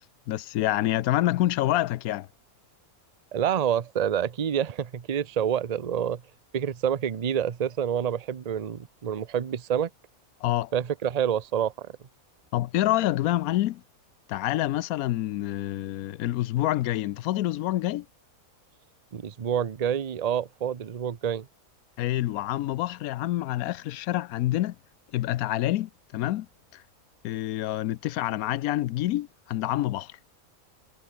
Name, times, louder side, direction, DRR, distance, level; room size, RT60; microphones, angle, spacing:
voice 1, 0.3-2.3 10.4-10.7 12.5-13.8 14.3-18.1 22.0-24.8 25.1-26.5 26.7-26.8 27.2-30.1, left 15 dB, 85° left, 1.1 m, -27 dB
voice 2, 3.3-6.2 6.5-9.9 10.7-11.9 19.1-21.5, right 9 dB, 40° right, 0.7 m, -27 dB
omnidirectional pair, 1.5 m